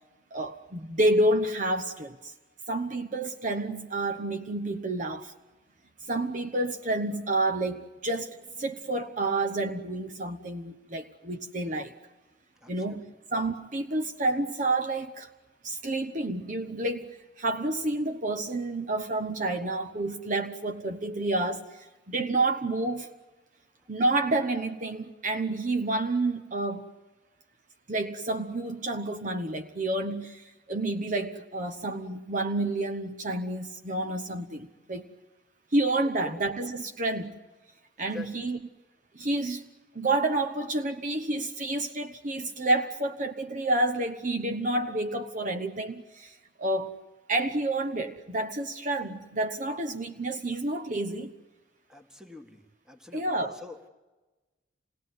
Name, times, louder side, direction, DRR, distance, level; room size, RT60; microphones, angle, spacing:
voice 1, 0.3-2.3 2.7-5.3 6.0-11.9 12.7-13.0 13.3-15.3 15.6-23.1 23.9-26.9 27.9-35.1 35.7-37.3 38.0-38.6 39.1-39.7 39.9-46.9 47.3-51.3 53.1-53.6, right 2 dB, 45° right, 1.0 m, -29 dB
voice 2, 12.6-13.0 36.2-36.4 38.1-38.3 51.9-52.6 52.9-53.4 53.6-53.9, left 4 dB, 5° right, 1.8 m, -45 dB
27.5 x 18.5 x 9.5 m
head